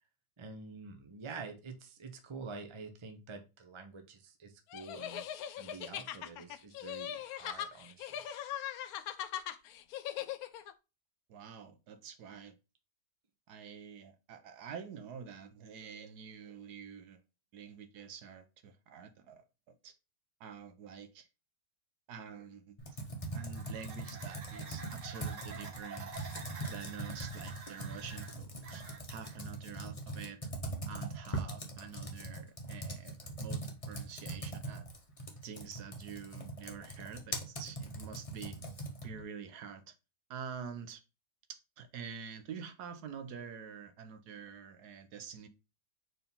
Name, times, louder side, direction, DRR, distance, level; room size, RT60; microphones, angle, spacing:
voice 1, 0.4-8.2, right 4 dB, 35° right, 0.5 m, -47 dB
sound 1, 4.7-10.7, left 10 dB, 70° left, 0.9 m, -40 dB
voice 2, 11.3-12.6 13.5-17.2 17.5-19.4 19.8-19.9 20.4-21.3 22.1-23.0 23.3-26.1 26.7-30.5 30.9-34.9 35.4-38.6 39.0-39.9 40.3-41.0 41.5-45.5, right 7 dB, 70° right, 1.2 m, -47 dB
Computer keyboard, 22.8-39.2, right 1 dB, 25° left, 1.0 m, -41 dB
sound 2, 23.2-29.4, right 5 dB, 50° right, 1.3 m, -49 dB
4.6 x 3.8 x 5.3 m
omnidirectional pair, 1.9 m